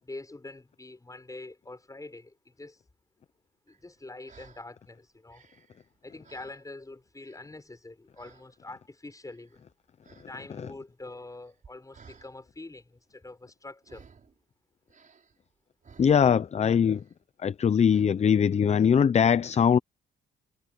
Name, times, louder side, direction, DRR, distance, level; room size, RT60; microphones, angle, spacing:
voice 1, 0.0-2.8 3.7-5.5 6.0-9.6 10.3-14.1, left 2 dB, 15° left, 6.8 m, -45 dB
sound 1, 3.7-4.7 5.1-6.9 7.2-7.8 8.1-8.6 9.1-9.7 10.0-10.3 10.6-12.3 13.8-14.4 14.9-16.6 16.9-17.2 17.9-18.1, right 5 dB, 40° right, 5.4 m, -56 dB
voice 2, 16.0-17.0 17.4-19.8, left 7 dB, 35° left, 0.5 m, -21 dB
cardioid pair, 90°, 20 cm